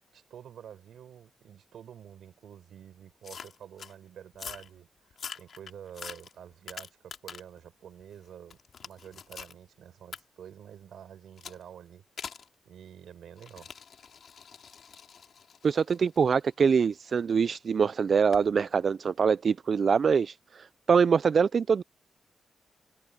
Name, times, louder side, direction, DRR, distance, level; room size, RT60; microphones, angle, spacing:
voice 1, 0.1-4.9 5.3-12.0 12.6-13.7, right 9 dB, 85° right, 6.4 m, -48 dB
sound 1, 3.2-3.9 4.3-4.7 5.1-7.6 8.0-9.6 10.1-10.2 11.4-11.6 12.2-12.5 13.4-17.3 18.3-18.5, left 7 dB, 70° left, 2.8 m, -44 dB
voice 2, 15.6-21.8, right 6 dB, 55° right, 0.3 m, -24 dB
cardioid pair, 75°, 0 cm